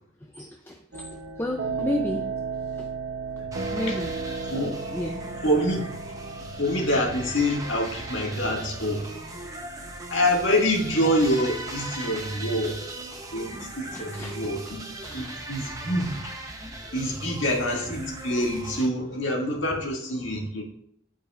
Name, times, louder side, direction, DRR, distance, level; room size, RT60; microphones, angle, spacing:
voice 1, 0.2-2.3 2.7-2.9 3.7-4.1 4.9-5.2 13.9-14.7 15.0-15.5, left 1 dB, 10° left, 2 dB, 0.4 m, -33 dB
sound 1, 0.9-18.9, right 4 dB, 65° right, 0.8 m, -37 dB
voice 2, 3.4-4.0 4.5-4.8 5.4-5.9 6.6-9.1 10.1-12.8 13.3-14.8 15.1-16.3 16.9-20.6, equal, 75° left, -1 dB, 1.9 m, -26 dB
sound 2, 3.5-18.9, right 1 dB, 15° right, 0.7 m, -39 dB
11.5 x 4.9 x 2.4 m, 0.68 s
head